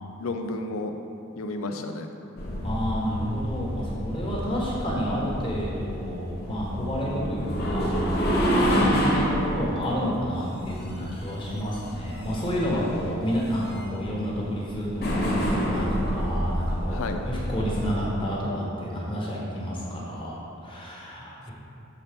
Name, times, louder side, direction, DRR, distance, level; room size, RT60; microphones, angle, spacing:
voice 1, 0.2-0.9 1.4-2.1 8.6-8.9 16.9-17.2 19.9-20.0, left 2 dB, 85° left, 6 dB, 0.5 m, -32 dB
sound 1, 2.4-17.8, equal, 45° left, 1.1 m, -28 dB
voice 2, 2.6-21.5, equal, 25° left, -5 dB, 1.2 m, -30 dB
7.0 x 4.1 x 5.2 m, 2.7 s
head